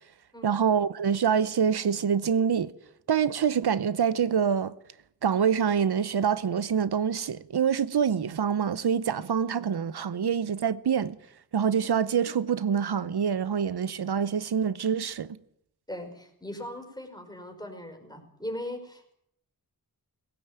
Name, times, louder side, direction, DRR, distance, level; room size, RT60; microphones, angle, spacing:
voice 1, 0.4-2.7 3.1-4.8 5.2-11.2 11.5-15.4, right 7 dB, 85° right, 0.8 m, -26 dB
voice 2, 15.9-19.1, left 1 dB, 10° left, 5.4 m, -39 dB
20.0 x 16.5 x 8.9 m
wide cardioid pair, 65°, 38 cm